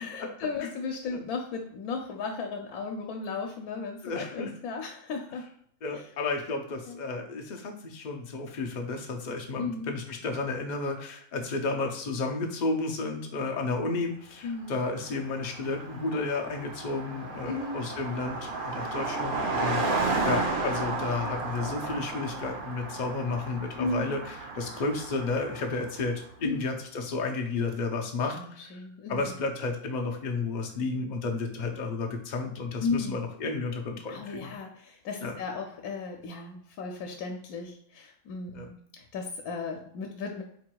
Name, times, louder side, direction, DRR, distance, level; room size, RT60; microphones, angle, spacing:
voice 1, 0.0-5.4 6.9-7.0 9.6-9.9 14.4-14.8 17.5-17.8 23.8-24.2 26.4-26.6 28.3-29.3 32.8-33.2 34.1-40.4, left 4 dB, 85° left, 3 dB, 1.1 m, -35 dB
voice 2, 4.0-4.5 5.8-28.8 29.1-34.5 35.2-35.3 38.5-38.7, left 3 dB, 55° left, 2 dB, 0.5 m, -32 dB
Car passing by, 14.7-14.8 15.0-26.1, right 3 dB, 50° right, 0.6 m, -33 dB
4.5 x 3.7 x 2.2 m, 0.68 s
omnidirectional pair, 1.5 m